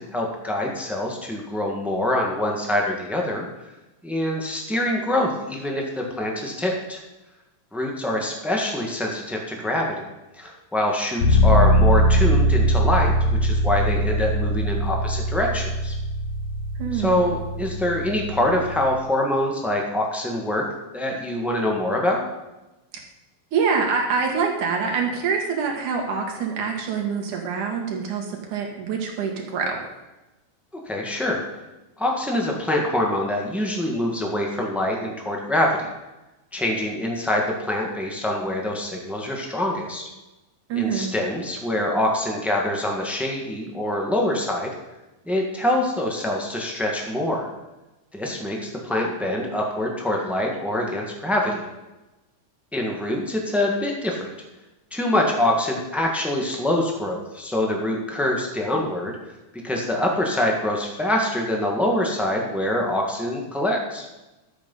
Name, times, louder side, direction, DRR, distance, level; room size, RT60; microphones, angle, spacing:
voice 1, 0.0-3.5 4.0-7.0 7.7-10.1 10.4-13.1 13.4-15.9 16.9-20.6 20.9-22.2 30.8-31.4 32.0-35.9 36.5-40.0 40.7-44.7 45.2-47.5 48.1-51.7 52.7-54.3 54.9-59.1 59.6-64.1, left 1 dB, ahead, 0 dB, 0.7 m, -25 dB
sound 1, 11.2-18.9, equal, 75° left, 3.8 m, -21 dB
voice 2, 16.8-17.2 23.5-29.8 40.7-41.1, right 5 dB, 75° right, 1 dB, 3.3 m, -25 dB
12.0 x 8.4 x 5.6 m, 1.0 s
omnidirectional pair, 3.6 m